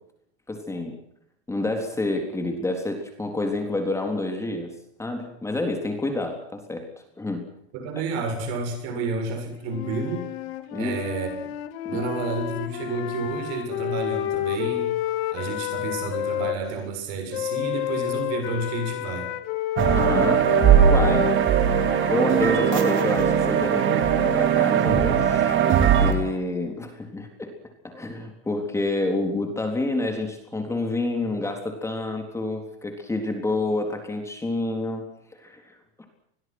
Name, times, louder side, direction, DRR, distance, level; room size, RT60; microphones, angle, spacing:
voice 1, 0.5-1.0 1.5-4.7 5.0-6.9 7.2-7.5 10.7-11.0 11.8-12.0 19.9-21.3 22.1-27.5 27.8-35.0 35.3-35.8, left 2 dB, 10° left, 4 dB, 3.7 m, -28 dB
voice 2, 7.7-10.3 10.8-11.3 11.9-14.9 15.3-19.3, right 4 dB, 55° right, 5 dB, 7.2 m, -30 dB
sound 1, 9.6-16.6 17.3-24.5, left 13 dB, 65° left, 2.7 m, -30 dB
sound 2, 19.8-26.1, right 8 dB, 35° right, 3.8 m, -19 dB
28.0 x 22.0 x 6.3 m, 0.74 s
supercardioid pair, 145°, 32 cm